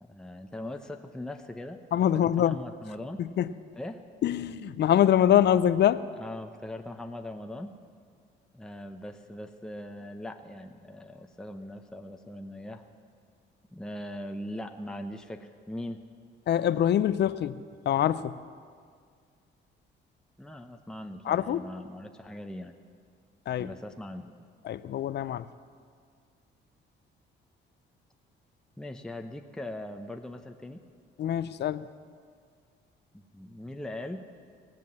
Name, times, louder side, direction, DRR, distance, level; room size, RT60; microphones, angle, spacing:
voice 1, 0.0-3.2 3.7-4.0 6.2-7.7 8.5-12.8 13.7-16.0 20.4-22.7 23.6-24.3 28.8-30.8 33.1-34.2, left 1 dB, 5° left, 5 dB, 0.8 m, -40 dB
voice 2, 1.9-2.6 3.2-3.5 4.2-6.0 16.5-18.4 21.3-21.6 23.5-23.7 24.6-25.5 31.2-31.9, left 10 dB, 60° left, 15 dB, 0.5 m, -24 dB
18.5 x 7.6 x 7.5 m, 2.1 s
cardioid pair, 90°, 20 cm